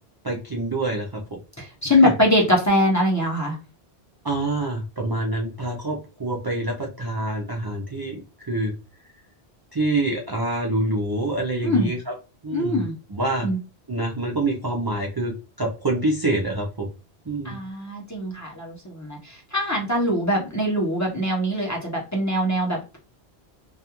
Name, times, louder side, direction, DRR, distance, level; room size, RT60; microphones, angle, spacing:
voice 1, 0.2-1.4 1.8-2.1 4.2-8.2 8.5-8.7 9.7-12.1 12.4-12.8 13.1-13.5 13.9-16.9 17.3-17.6, right 2 dB, 35° right, -2 dB, 0.3 m, -26 dB
voice 2, 1.6-3.6 11.6-11.9 12.5-12.9 13.4-13.6 17.4-23.0, left 1 dB, 20° left, -3 dB, 0.6 m, -22 dB
2.4 x 2.3 x 2.8 m, 0.31 s
omnidirectional pair, 1.1 m